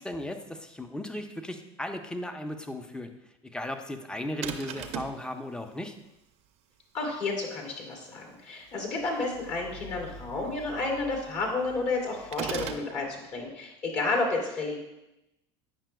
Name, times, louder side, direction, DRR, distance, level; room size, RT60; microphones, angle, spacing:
voice 1, 0.0-3.1 3.4-6.0, left 1 dB, 5° left, 6 dB, 0.7 m, -36 dB
sound 1, 4.4-5.2 12.3-12.9, right 8 dB, 50° right, 0.7 m, -35 dB
voice 2, 6.9-14.8, left 3 dB, 50° left, -1 dB, 2.5 m, -31 dB
sound 2, 8.7-13.4, left 2 dB, 80° left, 2.5 m, -49 dB
8.8 x 5.8 x 2.3 m, 0.92 s
hypercardioid pair, 85°, 15 cm